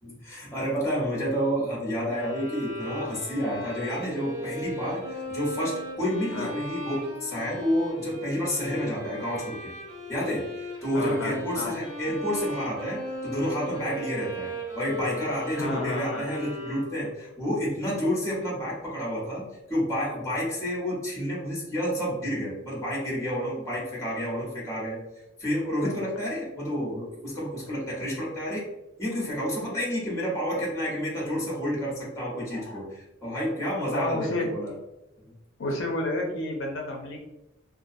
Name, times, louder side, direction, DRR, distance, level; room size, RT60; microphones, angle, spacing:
voice 1, 0.0-9.7 10.1-25.0 25.4-28.7 29.0-34.7, equal, 15° left, -5 dB, 0.9 m, -30 dB
sound 1, 2.1-17.2, left 1 dB, 15° right, 1.1 m, -37 dB
voice 2, 10.9-11.7 15.5-16.3 25.8-26.0 27.6-27.7 32.5-32.8 33.9-34.5 35.6-37.2, left 2 dB, 70° left, 0 dB, 0.5 m, -31 dB
2.4 x 2.2 x 2.5 m, 0.94 s
head